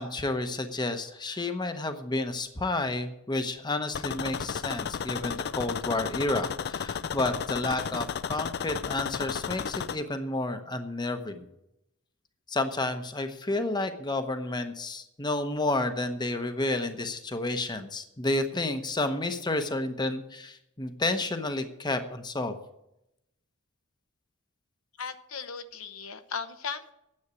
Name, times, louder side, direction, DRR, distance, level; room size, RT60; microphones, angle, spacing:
voice 1, 0.0-11.5 12.5-22.6, left 2 dB, 20° left, 8 dB, 0.9 m, -31 dB
sound 1, 3.9-10.0, left 7 dB, 50° left, 0.4 m, -33 dB
voice 2, 25.0-26.9, left 6 dB, 70° left, 9 dB, 0.9 m, -37 dB
9.7 x 8.1 x 8.4 m, 0.85 s
head